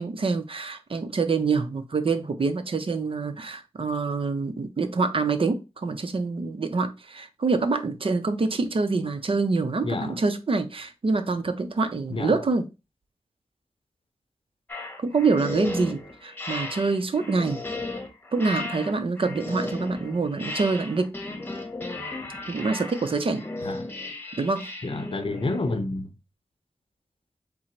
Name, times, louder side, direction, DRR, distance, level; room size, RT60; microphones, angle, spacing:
voice 1, 0.0-12.7 15.0-17.6 18.3-21.1 22.5-23.5 24.4-24.7, right 4 dB, 55° right, 0.6 m, -26 dB
voice 2, 9.8-10.2 12.1-12.3 23.6-23.8 24.8-26.1, left 2 dB, 50° left, 0.7 m, -29 dB
sound 1, 14.7-25.8, left 2 dB, 15° left, 1.0 m, -35 dB
3.8 x 2.0 x 4.3 m
cardioid pair, 50°, 11 cm